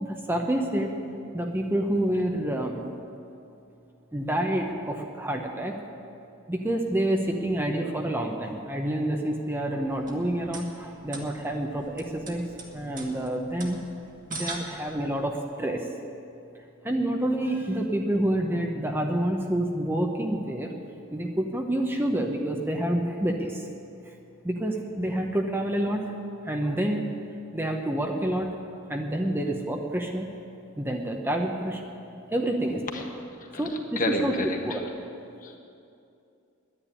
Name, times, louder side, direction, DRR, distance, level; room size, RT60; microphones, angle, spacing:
voice 1, 0.0-0.9 1.3-2.8 4.1-5.8 6.5-12.4 12.7-13.8 14.3-15.8 16.8-20.7 21.1-23.6 24.4-26.1 26.4-27.1 27.5-28.5 28.9-30.2 30.8-31.8 32.3-33.0 33.6-34.3 34.6-34.8, right 1 dB, 10° right, 2 dB, 0.8 m, -28 dB
sound 1, 9.9-15.3, right 3 dB, 40° right, 1.8 m, -41 dB
voice 2, 34.0-34.8 35.4-35.6, left 1 dB, 40° left, 2 dB, 1.5 m, -29 dB
10.0 x 10.0 x 9.9 m, 2.6 s
head